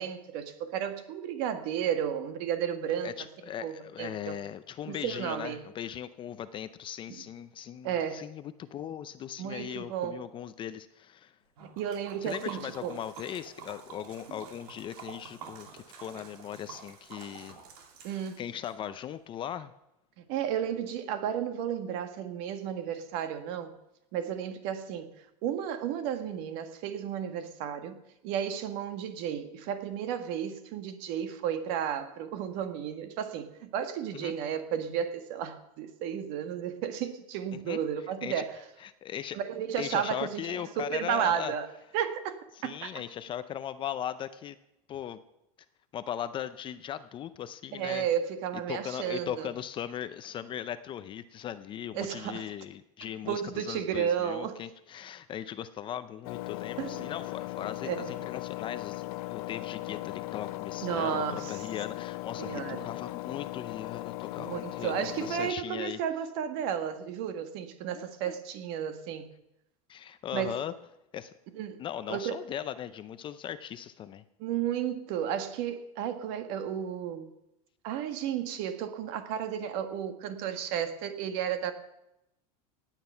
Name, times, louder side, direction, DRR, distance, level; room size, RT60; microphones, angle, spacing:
voice 1, 0.0-3.1 3.6-4.4 4.9-5.7 7.1-7.2 7.8-8.3 9.4-10.2 11.6-13.0 18.0-18.4 20.2-23.7 24.1-25.1 25.4-38.5 39.3-41.7 41.9-42.9 47.7-49.5 51.9-52.4 53.2-54.6 56.8-57.1 57.8-58.2 60.8-61.6 62.4-62.8 64.4-69.3 70.3-70.6 71.5-71.8 72.1-72.4 74.4-77.3 77.8-81.7, right 9 dB, 55° right, 8 dB, 1.6 m, -33 dB
voice 2, 3.0-11.3 12.2-17.6 18.1-19.7 34.1-34.3 37.5-37.8 38.2-38.5 38.8-39.4 39.8-41.5 42.5-44.6 44.9-45.2 45.9-48.1 48.7-59.0 59.3-66.0 67.9-68.3 69.9-70.7 71.1-71.3 71.8-74.2, left 10 dB, 25° left, 13 dB, 0.5 m, -39 dB
Liquid, 11.6-18.7, right 6 dB, 85° right, 3.2 m, -48 dB
Engine, 56.2-65.5, left 18 dB, 75° left, 0.5 m, -38 dB
17.0 x 9.1 x 5.7 m, 0.88 s
supercardioid pair, 145°, 19 cm